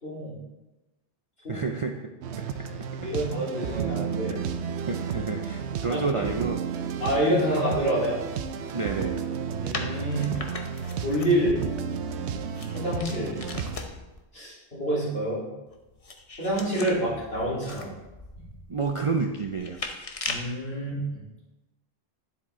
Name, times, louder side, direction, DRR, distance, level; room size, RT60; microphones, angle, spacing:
voice 1, 0.0-0.3 1.4-1.6 3.0-4.4 5.9-6.2 7.0-8.2 9.6-10.3 11.0-11.6 12.7-13.4 14.3-15.4 16.4-17.9 20.3-21.0, right 1 dB, 60° left, -8 dB, 4.1 m, -27 dB
voice 2, 1.5-2.1 4.3-4.4 4.9-6.6 8.7-9.2 18.7-19.8, right 4 dB, 40° right, 2 dB, 0.5 m, -29 dB
sound 1, 2.2-13.8, right 7 dB, 75° right, 0.9 m, -32 dB
sound 2, 9.7-14.2 15.7-20.6, left 3 dB, 35° left, 0.8 m, -39 dB
9.6 x 7.5 x 3.7 m, 1.0 s
omnidirectional pair, 1.2 m